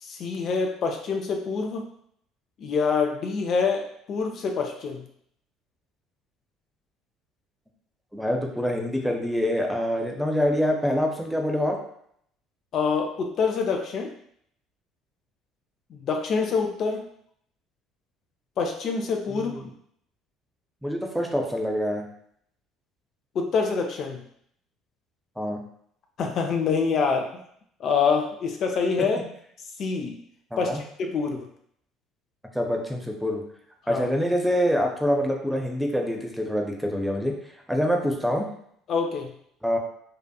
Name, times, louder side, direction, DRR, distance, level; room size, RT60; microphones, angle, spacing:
voice 1, 0.0-1.9 2.6-5.0 12.7-14.1 15.9-17.0 18.6-19.6 23.3-24.2 26.2-27.3 27.8-29.2 29.8-30.2 30.6-31.5 33.9-34.1 38.9-39.3, left 5 dB, 50° left, 3 dB, 0.3 m, -26 dB
voice 2, 8.1-11.8 19.3-19.7 20.8-22.0 25.4-25.6 30.5-30.8 32.5-33.4 33.9-37.3 37.7-38.5 39.6-39.9, equal, ahead, 2 dB, 0.6 m, -25 dB
2.7 x 2.4 x 2.2 m, 0.68 s
hypercardioid pair, 60°, 0 cm